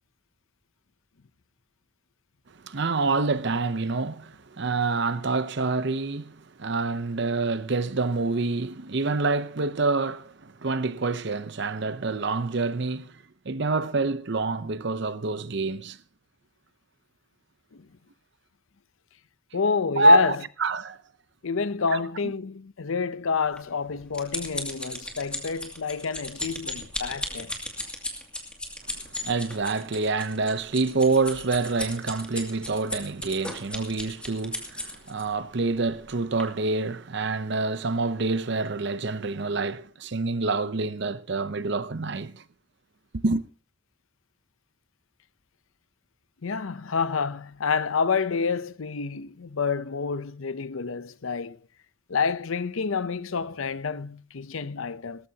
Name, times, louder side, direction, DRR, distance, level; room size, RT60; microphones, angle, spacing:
voice 1, 2.6-16.0 20.0-21.0 21.9-22.0 29.2-42.4 43.1-43.4, right 3 dB, 55° right, 0.7 m, -26 dB
voice 2, 19.5-20.4 21.4-27.5 46.4-51.6 52.1-55.3, left 5 dB, 70° left, 0.6 m, -28 dB
sound 1, 23.6-35.2 35.9-36.1 36.4-36.5, left 1 dB, 5° left, 2.3 m, -35 dB
19.0 x 14.0 x 2.8 m
head